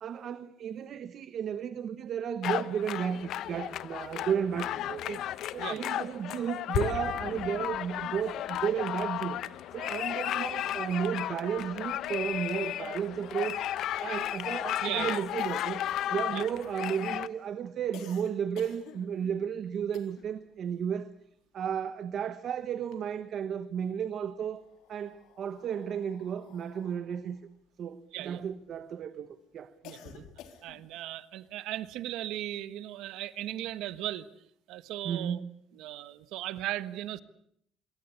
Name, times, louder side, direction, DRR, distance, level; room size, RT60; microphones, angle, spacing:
voice 1, 0.0-5.2 5.5-9.4 9.7-13.6 14.0-15.8 16.1-21.1 21.5-24.6 24.9-27.4 27.8-29.7 30.0-30.3 35.0-35.5, right 8 dB, 45° right, 1.2 m, -33 dB
sound 1, 2.4-17.3, left 12 dB, 60° left, 1.0 m, -34 dB
voice 2, 14.8-15.2 16.3-16.4 28.1-28.4 29.8-30.0 30.6-34.3 34.7-35.4 35.7-37.2, right 14 dB, 80° right, 1.4 m, -37 dB
sound 2, 15.4-20.5 20.8-22.3 22.7-23.6 24.4-28.8 29.3-31.0, left 9 dB, 75° left, 3.8 m, -54 dB
26.5 x 23.0 x 8.3 m
cardioid pair, 165°, 0 cm